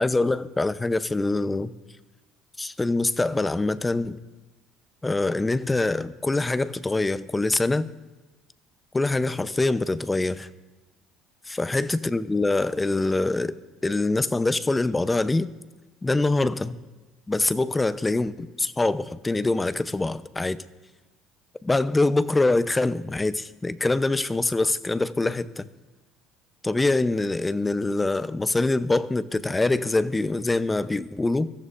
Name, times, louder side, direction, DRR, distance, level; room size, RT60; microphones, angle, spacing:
voice 1, 0.0-1.7 2.6-4.2 5.0-7.9 8.9-10.5 11.5-13.5 13.8-15.5 16.0-16.8 17.3-20.6 21.6-25.7 26.6-31.5, left 2 dB, 15° left, 0.7 m, -24 dB
23.0 x 14.0 x 2.6 m
hypercardioid pair, 65°, 0 cm